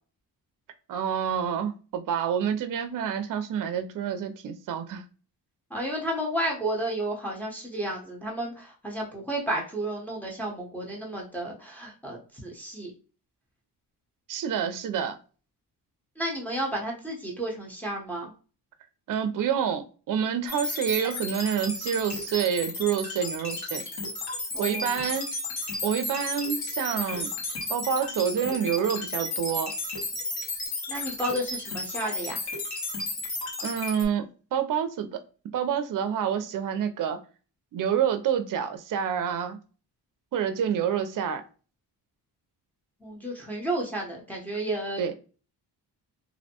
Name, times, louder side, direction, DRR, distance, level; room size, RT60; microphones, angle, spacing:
voice 1, 0.9-5.1 14.3-15.2 19.1-23.8 24.6-25.3 25.8-27.3 27.7-29.7 33.6-35.2 35.5-37.2 37.7-39.6 40.3-41.4 45.0-45.1, right 8 dB, 50° right, 0.5 m, -28 dB
voice 2, 5.7-12.9 16.2-18.3 24.5-25.1 30.9-32.4 43.0-45.1, right 1 dB, 5° left, 0.8 m, -32 dB
sound 1, 20.5-34.0, left 2 dB, 65° left, 1.2 m, -33 dB
2.6 x 2.1 x 2.8 m
cardioid pair, 95°, 42 cm